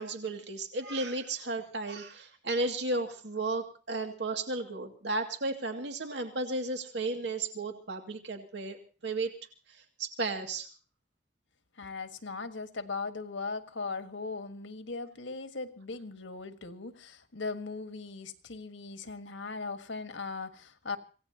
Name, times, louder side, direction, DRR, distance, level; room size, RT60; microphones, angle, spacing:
voice 1, 0.0-9.3 9.7-10.7, right 2 dB, 70° right, 4 dB, 2.4 m, -34 dB
voice 2, 11.8-21.0, left 4 dB, 85° left, 8 dB, 1.6 m, -39 dB
26.0 x 17.5 x 2.9 m, 0.37 s
head